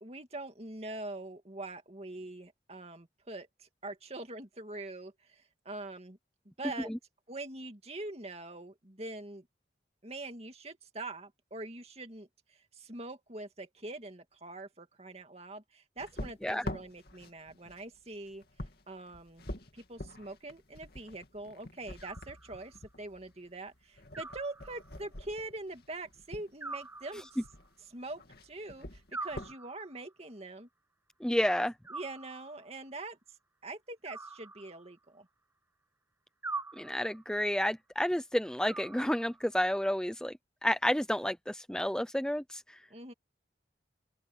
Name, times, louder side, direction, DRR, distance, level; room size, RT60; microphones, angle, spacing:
voice 1, 0.0-6.2 6.6-6.9 7.3-9.5 10.0-18.4 18.9-19.5 19.7-27.3 27.8-30.7 31.9-33.2 33.6-35.3 42.9-43.1, right 2 dB, 35° right, 2.3 m, -43 dB
sound 1, 16.0-26.5 27.4-27.8 28.1-29.6, left 1 dB, 60° left, 2.6 m, -46 dB
Animal, 22.0-22.9 24.1-25.1 26.6-27.7 29.1-30.1 31.8-32.8 34.0-35.1 36.4-37.3 38.7-39.6, right 3 dB, 15° right, 1.5 m, -44 dB
voice 2, 31.2-31.7 36.8-40.3 40.6-42.8, equal, 5° left, 0.6 m, -30 dB
open air
head